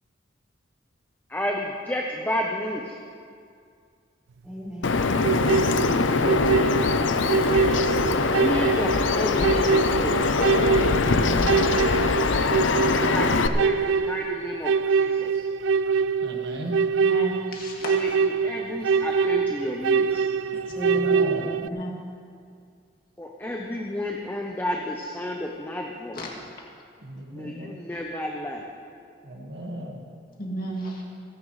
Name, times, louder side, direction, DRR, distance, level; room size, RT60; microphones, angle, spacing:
voice 1, 1.3-3.0 8.0-10.2 12.4-15.5 18.0-20.3 23.2-26.2 27.3-28.6, left 1 dB, 10° left, 0 dB, 0.8 m, -31 dB
voice 2, 4.4-5.0 11.0-11.5 12.5-13.3 20.7-21.6 30.4-30.6, equal, 5° right, -9 dB, 4.5 m, -34 dB
Bird vocalization bird call bird song, 4.8-13.5, left 4 dB, 85° left, 0.6 m, -22 dB
sound 1, 5.2-21.7, right 5 dB, 80° right, 0.3 m, -24 dB
voice 3, 16.2-16.9 20.9-21.4 27.0-27.8 29.2-30.0, equal, 60° right, 0 dB, 1.8 m, -37 dB
voice 4, 17.0-18.0 20.5-20.6 21.7-22.0 26.1-26.3 30.4-31.0, equal, 50° left, -2 dB, 2.2 m, -33 dB
28.0 x 10.5 x 3.2 m, 2.2 s
head